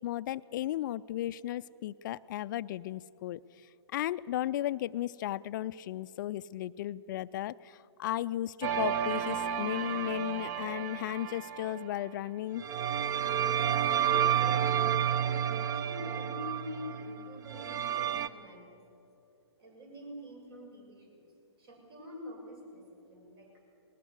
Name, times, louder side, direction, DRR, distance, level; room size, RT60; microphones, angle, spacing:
voice 1, 0.0-3.4 3.9-12.7, left 13 dB, 45° left, 16 dB, 0.4 m, -35 dB
sound 1, 8.6-11.9 12.6-18.3, right 9 dB, 40° right, 0.8 m, -31 dB
voice 2, 13.8-18.8 19.6-21.3 21.6-23.6, equal, 60° right, 1 dB, 7.2 m, -45 dB
19.5 x 19.5 x 8.0 m, 2.7 s
hypercardioid pair, 125°, 15 cm